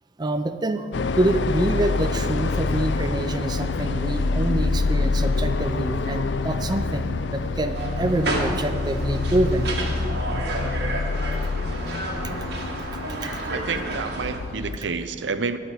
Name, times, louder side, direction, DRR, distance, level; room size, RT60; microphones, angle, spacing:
voice 1, 0.2-0.9 1.2-9.7 13.2-13.4, right 1 dB, 25° right, 7 dB, 0.5 m, -26 dB
sound 1, 0.9-14.8, left 3 dB, 75° left, 0.5 m, -26 dB
sound 2, 4.0-13.7, equal, 40° right, 1.1 m, -50 dB
sound 3, 7.7-14.4, right 2 dB, 60° right, 1.8 m, -31 dB
voice 2, 13.5-15.6, right 4 dB, 80° right, 11 dB, 0.7 m, -29 dB
12.5 x 5.8 x 9.2 m, 2.2 s
head